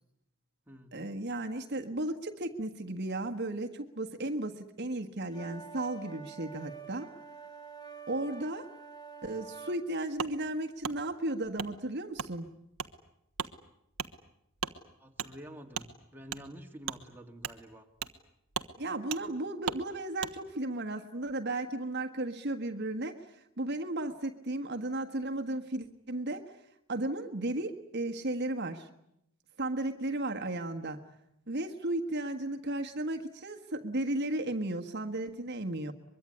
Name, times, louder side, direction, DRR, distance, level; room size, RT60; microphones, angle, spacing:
voice 1, 0.9-7.1 8.1-8.7 9.2-12.5 18.8-26.5 26.9-28.9 29.6-31.0 31.5-35.9, right 1 dB, 50° right, 5 dB, 1.6 m, -35 dB
sound 1, 5.3-9.8, right 6 dB, 20° left, 3.2 m, -47 dB
Wood, 10.2-10.3 10.8-11.0 11.6-11.7 12.2-12.3 12.8-12.9 13.3-13.5 13.9-14.1 14.6-14.8 15.2-15.3 15.7-15.9 16.3-16.4 16.8-17.0 17.4-17.6 18.0-18.2 18.5-18.7 19.1-19.2 19.6-19.8 20.2-20.3, right 7 dB, 90° right, 1.3 m, -36 dB
voice 2, 15.0-17.9, equal, 10° right, 2 dB, 2.1 m, -48 dB
23.5 x 23.0 x 9.8 m, 0.79 s
head